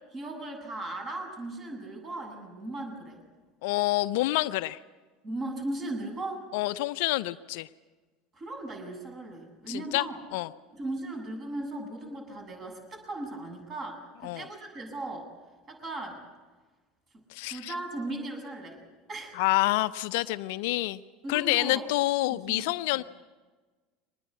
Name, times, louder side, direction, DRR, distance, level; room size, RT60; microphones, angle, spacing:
voice 1, 0.1-3.2 5.2-6.5 8.3-10.2 10.7-15.3 15.7-16.2 17.1-18.8 19.1-19.4 21.2-21.9 22.3-22.6 22.9-23.1, right 2 dB, 35° right, 3 dB, 7.9 m, -37 dB
voice 2, 3.6-4.8 6.5-7.7 9.7-10.0 10.3-10.5 14.2-14.4 17.3-17.7 19.4-21.0 21.3-23.0, left 18 dB, 60° left, 14 dB, 0.7 m, -27 dB
25.0 x 20.0 x 8.4 m, 1.3 s
figure-of-eight pair, 70°, 0 cm